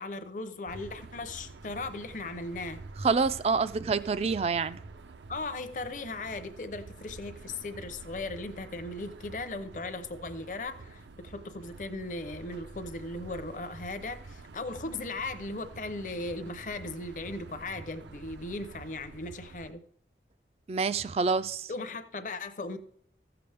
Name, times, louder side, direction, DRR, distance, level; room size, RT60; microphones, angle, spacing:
voice 1, 0.0-2.8 5.3-19.8 21.7-22.8, left 2 dB, 45° left, 0.7 m, -37 dB
sound 1, 0.7-19.7, right 3 dB, 90° right, 0.6 m, -48 dB
voice 2, 3.0-4.8 20.7-21.7, right 4 dB, 35° right, 0.3 m, -27 dB
15.0 x 6.8 x 3.4 m
head